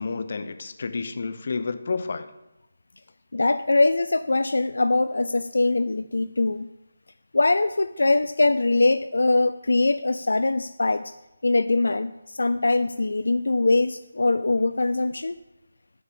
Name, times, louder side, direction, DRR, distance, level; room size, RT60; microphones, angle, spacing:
voice 1, 0.0-2.3, left 4 dB, 50° left, 10 dB, 0.8 m, -30 dB
voice 2, 3.3-6.7 7.3-11.1 11.4-15.3, left 2 dB, 80° left, 12 dB, 0.4 m, -22 dB
7.3 x 6.8 x 7.0 m, 0.95 s
figure-of-eight pair, 165°, 0 cm